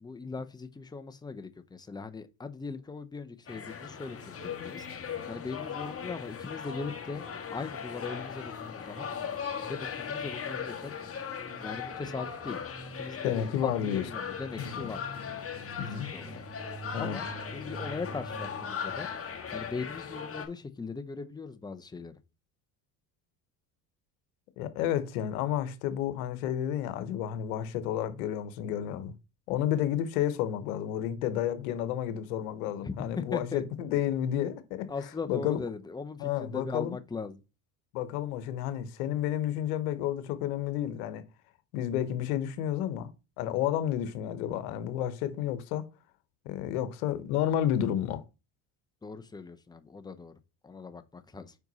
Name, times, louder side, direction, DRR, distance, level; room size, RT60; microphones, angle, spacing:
voice 1, 0.0-4.9 5.3-9.1 9.7-10.9 11.6-12.7 13.0-15.0 15.8-16.4 17.0-19.1 19.5-22.1 32.8-33.6 34.9-37.4 49.0-50.3 50.6-51.5, left 4 dB, 10° left, 0.6 m, -39 dB
sound 1, 3.5-20.5, left 6 dB, 30° left, 1.7 m, -38 dB
voice 2, 13.2-14.0 14.6-14.8 15.8-16.1 16.9-17.2 24.6-29.1 29.5-34.9 35.3-35.6 36.2-36.9 37.9-41.2 41.7-43.1 43.4-45.9 46.4-48.2, left 11 dB, 85° left, 1.0 m, -31 dB
5.1 x 4.6 x 4.0 m
supercardioid pair, 90°, 43 cm